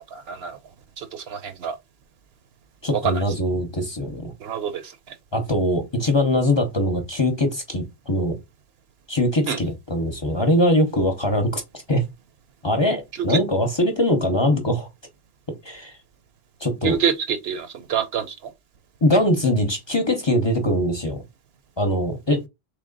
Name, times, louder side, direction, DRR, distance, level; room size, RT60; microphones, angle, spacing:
voice 1, 0.1-0.6 1.0-1.8 3.0-3.2 4.4-4.9 9.5-9.6 16.8-18.3, right 7 dB, 70° right, 0.9 m, -26 dB
voice 2, 2.8-4.3 5.3-8.3 9.1-11.6 11.9-12.0 12.6-14.9 15.6-15.9 16.6-17.0 19.0-21.2 21.8-22.4, left 1 dB, 30° left, 0.7 m, -22 dB
3.3 x 3.3 x 3.8 m
omnidirectional pair, 1.1 m